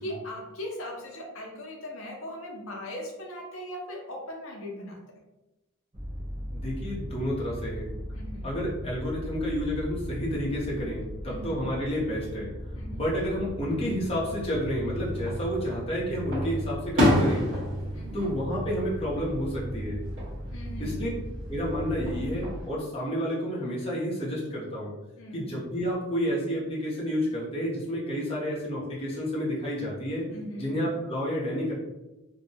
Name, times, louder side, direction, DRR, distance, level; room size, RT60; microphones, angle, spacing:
voice 1, 0.0-5.0 8.1-8.5 11.2-11.6 12.7-13.0 17.9-18.3 20.5-21.1 25.2-25.5 30.3-30.6, left 1 dB, 70° left, 0 dB, 0.6 m, -39 dB
sound 1, 5.9-22.6, equal, 20° right, 0.4 m, -37 dB
voice 2, 6.5-8.0 8.4-12.5 12.9-17.5 18.1-20.0 20.8-21.1 21.5-24.9 25.3-30.3 30.6-31.7, equal, 25° left, -6 dB, 0.7 m, -30 dB
Fireworks, 15.1-15.8 16.3-19.4 19.8-20.3 21.9-22.7, left 1 dB, 60° right, 1.0 m, -28 dB
2.6 x 2.1 x 2.6 m, 1.0 s
head